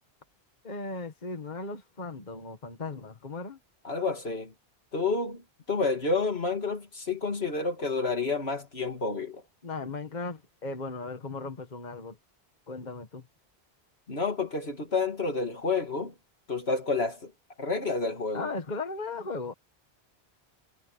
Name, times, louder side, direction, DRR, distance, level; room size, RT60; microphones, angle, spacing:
voice 1, 0.6-3.6 9.6-12.2 12.7-13.2 18.3-19.5, left 3 dB, 45° left, 1.7 m, -37 dB
voice 2, 3.8-4.5 4.9-9.4 14.1-16.1 16.5-17.3 17.6-18.5, left 4 dB, 85° left, 2.9 m, -29 dB
omnidirectional pair, 1.0 m